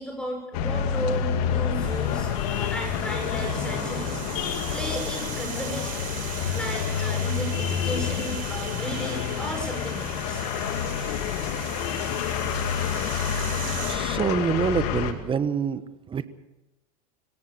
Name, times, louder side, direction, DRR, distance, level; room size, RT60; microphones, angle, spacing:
voice 1, 0.0-4.5 4.7-6.1 6.5-10.4, equal, 5° left, 3 dB, 6.2 m, -34 dB
sound 1, 0.5-15.1, left 8 dB, 65° left, 2.4 m, -28 dB
sound 2, 1.8-14.0, right 7 dB, 40° right, 5.1 m, -38 dB
voice 2, 13.9-15.8 16.1-16.3, right 6 dB, 25° right, 14 dB, 1.3 m, -26 dB
24.0 x 17.5 x 6.9 m, 0.92 s
hypercardioid pair, 90°, 21 cm